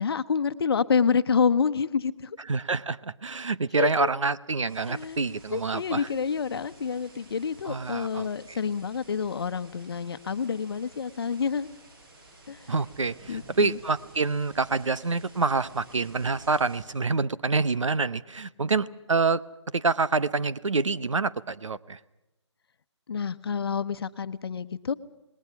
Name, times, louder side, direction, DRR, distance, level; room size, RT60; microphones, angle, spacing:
voice 1, 0.0-2.4 3.8-4.1 4.9-5.2 5.5-11.7 12.5-12.7 13.3-13.8 23.1-24.9, left 6 dB, 55° left, 12 dB, 1.0 m, -28 dB
voice 2, 2.5-6.1 7.6-8.6 12.7-19.4 19.7-22.0, right 4 dB, 90° right, 16 dB, 0.9 m, -27 dB
sound 1, 4.7-16.8, right 2 dB, 50° right, 7.2 m, -52 dB
28.0 x 20.0 x 5.9 m, 0.97 s
figure-of-eight pair, 155°, 15 cm